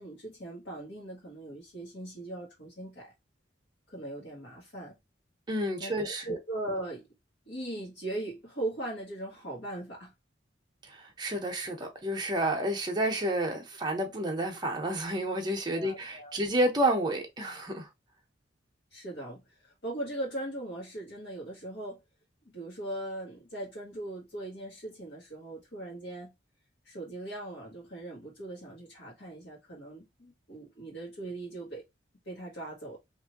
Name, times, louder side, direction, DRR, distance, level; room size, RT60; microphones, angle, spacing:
voice 1, 0.0-3.1 3.9-5.0 5.8-7.1 7.5-10.1 15.7-16.4 18.9-22.0 22.4-26.3 26.8-31.8 32.2-33.0, right 1 dB, 65° left, 1.2 m, -39 dB
voice 2, 5.5-6.4 10.8-17.9, right 1 dB, 25° right, 0.8 m, -30 dB
3.0 x 2.6 x 2.9 m
head